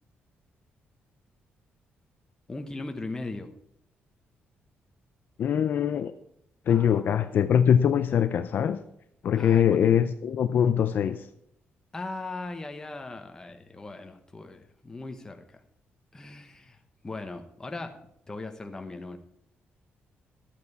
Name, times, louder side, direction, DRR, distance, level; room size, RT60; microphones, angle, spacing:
voice 1, 2.5-3.5 6.7-7.0 9.3-9.9 11.9-15.6 16.1-16.8 17.0-18.0 18.3-19.2, left 2 dB, 15° left, 5 dB, 1.0 m, -38 dB
voice 2, 5.4-6.1 6.7-8.8 9.2-11.3, left 8 dB, 55° left, 10 dB, 0.5 m, -23 dB
12.0 x 8.3 x 4.7 m, 0.73 s
wide cardioid pair, 165°, 4 cm